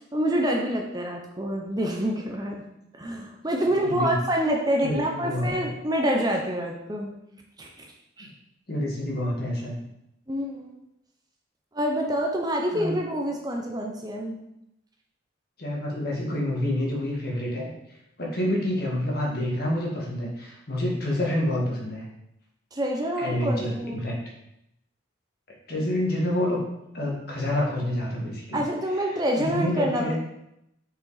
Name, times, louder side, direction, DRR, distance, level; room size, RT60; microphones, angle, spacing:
voice 1, 0.1-2.6 3.0-7.1 7.6-7.9 8.2-8.3 10.3-10.8 11.7-14.4 22.7-24.1 28.5-30.2, equal, 20° right, 1 dB, 0.7 m, -27 dB
voice 2, 3.8-4.2 4.8-5.7 8.7-9.8 12.7-13.0 15.6-17.7 18.2-22.0 23.2-24.2 25.7-26.6 26.9-28.6 29.1-30.2, left 1 dB, 55° left, -2 dB, 1.8 m, -28 dB
6.7 x 5.0 x 4.0 m, 0.82 s
head